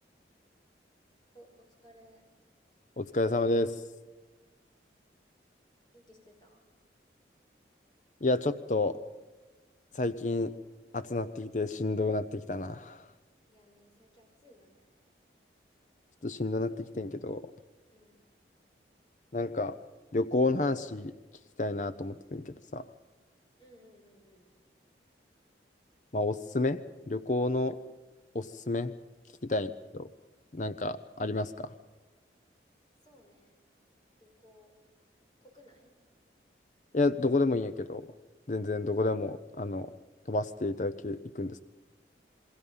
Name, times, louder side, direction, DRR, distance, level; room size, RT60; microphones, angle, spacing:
voice 1, 1.3-2.2 5.9-6.6 13.5-14.9 17.9-18.2 23.6-24.5 33.0-33.6 34.2-34.7 35.4-35.9, equal, 25° left, 1 dB, 5.3 m, -59 dB
voice 2, 3.0-3.8 8.2-9.0 9.9-10.5 10.9-13.1 16.2-17.4 19.3-19.7 20.1-21.1 21.6-22.8 26.1-26.8 27.1-27.7 28.3-28.9 29.4-30.1 30.5-31.7 36.9-38.1 38.5-39.9 40.3-41.6, left 2 dB, 45° left, 12 dB, 0.6 m, -30 dB
27.5 x 22.0 x 5.5 m, 1.2 s
head